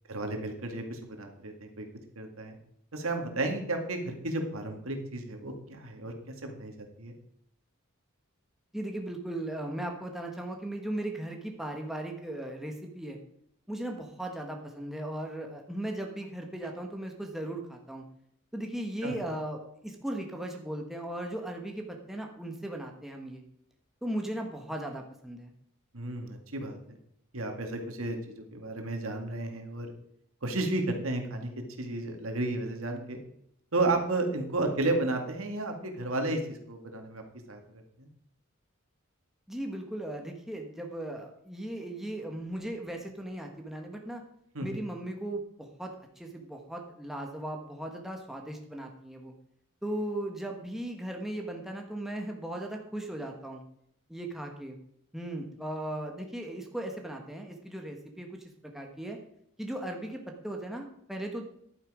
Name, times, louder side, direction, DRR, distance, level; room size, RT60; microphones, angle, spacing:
voice 1, 0.1-1.9 2.2-2.5 2.9-6.1 6.4-7.1 19.0-19.2 25.9-27.0 27.3-29.9 30.4-31.5 31.8-33.2 33.7-37.2 37.5-38.1 44.5-44.8, right 2 dB, 75° right, 4 dB, 2.1 m, -33 dB
voice 2, 8.7-13.2 13.7-18.0 18.5-23.4 24.0-25.5 39.5-44.2 44.6-45.9 46.2-49.3 49.8-53.6 54.1-54.8 55.1-58.4 58.7-59.2 59.6-61.4, right 1 dB, ahead, 2 dB, 1.3 m, -37 dB
11.0 x 9.1 x 5.0 m, 0.71 s
head